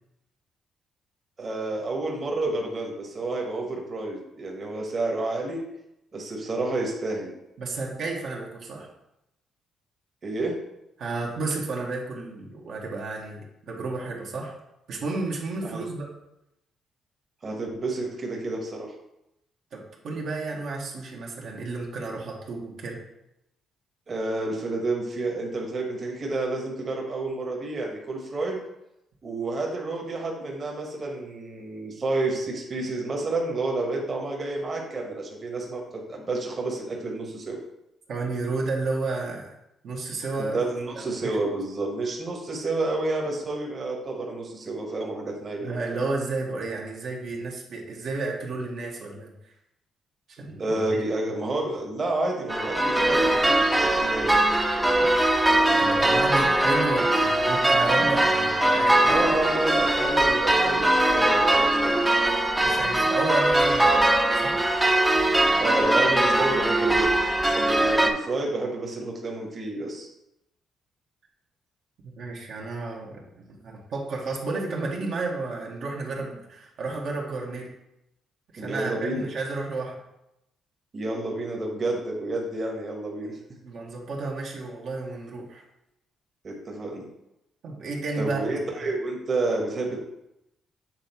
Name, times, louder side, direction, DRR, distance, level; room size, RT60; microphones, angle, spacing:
voice 1, 1.4-5.6 6.1-7.3 10.2-10.6 15.6-15.8 17.4-18.9 24.1-28.6 29.2-37.6 40.4-46.0 50.6-54.4 59.1-62.0 65.6-67.1 67.5-70.1 78.6-79.3 80.9-83.4 86.4-87.1 88.2-90.0, right 2 dB, 40° right, 0 dB, 1.3 m, -30 dB
voice 2, 7.6-8.9 11.0-14.5 14.9-16.1 19.7-23.0 38.1-39.5 39.8-40.6 40.9-41.4 45.6-49.3 50.4-50.8 55.7-59.3 62.6-64.1 64.3-64.6 72.0-77.7 78.5-80.0 83.6-85.6 87.6-88.4, right 3 dB, 70° right, -2 dB, 1.4 m, -32 dB
sound 1, 52.5-68.1, right 1 dB, 10° right, 0.8 m, -21 dB
7.5 x 3.5 x 4.4 m, 0.87 s
cardioid pair, 90°, 0 cm